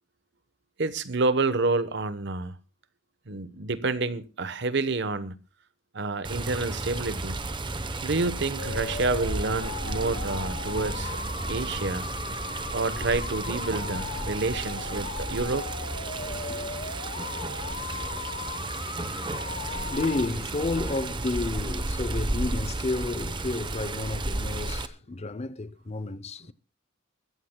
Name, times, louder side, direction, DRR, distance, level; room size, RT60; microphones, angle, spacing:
voice 1, 0.8-2.6 3.3-5.3 5.9-7.4 8.0-11.2 11.5-12.1 12.7-15.7, right 3 dB, 60° right, 1.0 m, -28 dB
Water, 6.2-24.9, right 2 dB, 25° right, 0.8 m, -33 dB
sound 1, 8.6-20.3, left 5 dB, 50° left, 1.0 m, -38 dB
voice 2, 16.2-16.7 19.4-19.5 19.9-26.5, left 2 dB, 30° left, 0.6 m, -31 dB
23.0 x 14.5 x 2.2 m
head